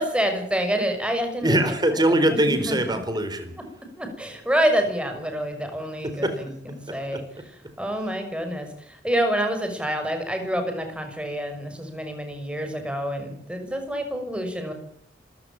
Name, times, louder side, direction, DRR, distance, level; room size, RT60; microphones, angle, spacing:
voice 1, 0.0-1.7 2.3-3.0 4.0-7.2 7.8-14.7, equal, 5° right, 5 dB, 6.1 m, -27 dB
voice 2, 1.4-3.5 6.0-6.4 6.9-7.2, right 1 dB, 25° right, 9 dB, 4.3 m, -23 dB
27.0 x 15.5 x 9.0 m, 0.64 s
head